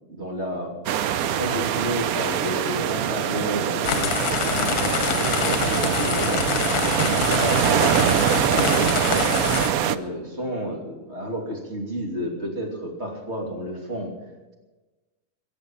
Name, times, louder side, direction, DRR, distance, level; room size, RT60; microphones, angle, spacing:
voice 1, 0.1-0.8 1.2-4.8 5.1-6.6 7.1-7.9 8.2-14.1, equal, 45° right, 0 dB, 3.2 m, -31 dB
sound 1, 0.9-10.0, right 10 dB, 75° right, 1.1 m, -23 dB
sound 2, 3.8-9.7, left 10 dB, 85° left, 1.2 m, -26 dB
22.5 x 7.7 x 7.3 m, 1.2 s
omnidirectional pair, 1.6 m